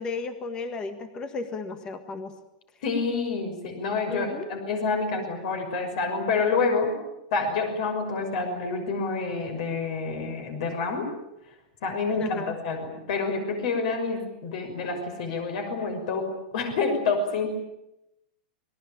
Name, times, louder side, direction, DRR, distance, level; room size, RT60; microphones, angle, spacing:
voice 1, 0.0-2.3 4.1-4.5 12.2-12.5, left 4 dB, 15° left, 9 dB, 1.6 m, -34 dB
voice 2, 2.8-7.0 7.3-11.1 11.8-16.3 16.5-17.5, left 4 dB, 50° left, 5 dB, 6.1 m, -28 dB
28.0 x 21.0 x 9.0 m, 0.87 s
supercardioid pair, 175°, 5 cm